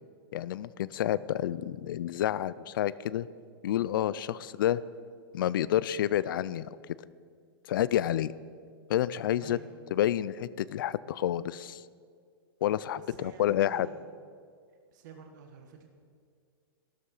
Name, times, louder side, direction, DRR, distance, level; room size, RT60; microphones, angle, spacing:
voice 1, 0.3-3.3 3.6-4.8 5.3-6.7 7.7-8.3 8.9-9.6 9.9-11.8 12.6-13.9, left 12 dB, 60° left, 18 dB, 0.4 m, -29 dB
voice 2, 9.4-9.8 12.9-14.1 14.9-15.9, right 7 dB, 50° right, 4 dB, 1.5 m, -49 dB
13.0 x 12.5 x 5.6 m, 2.1 s
supercardioid pair, 170°, 13 cm